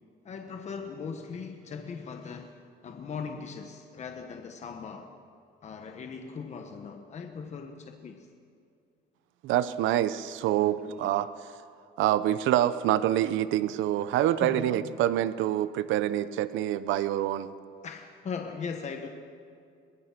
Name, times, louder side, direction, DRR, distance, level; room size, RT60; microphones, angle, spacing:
voice 1, 0.2-5.1 5.6-8.3 10.8-11.1 14.4-15.0 17.8-19.1, left 5 dB, 35° left, 5 dB, 1.2 m, -39 dB
voice 2, 9.4-11.3 12.0-17.5, right 12 dB, 90° right, 14 dB, 0.7 m, -26 dB
22.5 x 19.5 x 5.9 m, 2.4 s
cardioid pair, 140°, 19 cm